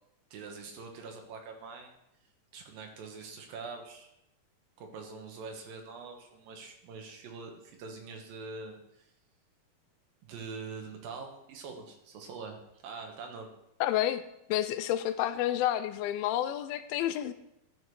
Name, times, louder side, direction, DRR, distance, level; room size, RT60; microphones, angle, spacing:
voice 1, 0.3-1.9 2.5-4.1 4.8-8.8 10.2-13.5, right 4 dB, 70° right, 3 dB, 2.8 m, -44 dB
voice 2, 13.8-14.2 14.5-17.3, left 12 dB, 80° left, 11 dB, 2.3 m, -29 dB
12.0 x 6.6 x 4.7 m, 0.82 s
omnidirectional pair, 4.6 m